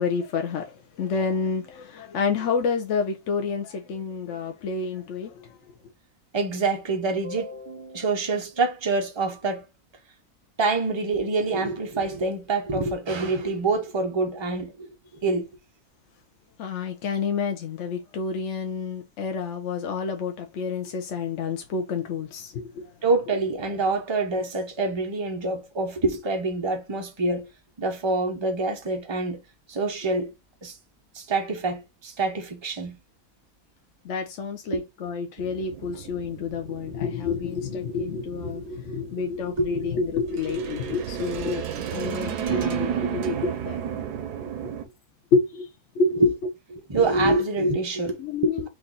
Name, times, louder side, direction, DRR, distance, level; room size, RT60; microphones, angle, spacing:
voice 1, 0.0-5.6 16.6-22.9 34.0-43.8 44.4-44.7 45.3-45.7 45.9-46.2 48.2-48.7, left 4 dB, 60° left, 0.8 m, -29 dB
voice 2, 6.3-9.6 10.6-14.9 15.2-15.5 23.0-27.5 27.8-29.4 29.7-30.3 30.6-30.7 31.1-33.0 34.7-34.8 39.6-39.7 46.1-46.3 46.7-48.7, right 3 dB, 35° right, 0.4 m, -26 dB
sound 1, 35.4-44.8, right 8 dB, 85° right, 1.3 m, -33 dB
4.5 x 2.6 x 3.8 m
omnidirectional pair, 1.7 m